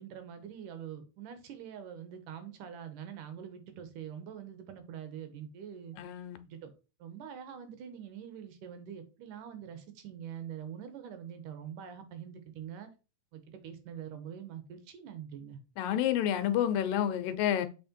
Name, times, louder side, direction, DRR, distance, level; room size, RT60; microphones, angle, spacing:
voice 1, 0.0-6.0 6.5-6.7 7.0-12.9 13.3-15.6, right 9 dB, 75° right, 2.5 m, -44 dB
voice 2, 6.0-6.4 15.8-17.7, left 10 dB, 80° left, 2.4 m, -29 dB
7.4 x 4.4 x 4.3 m
omnidirectional pair, 4.0 m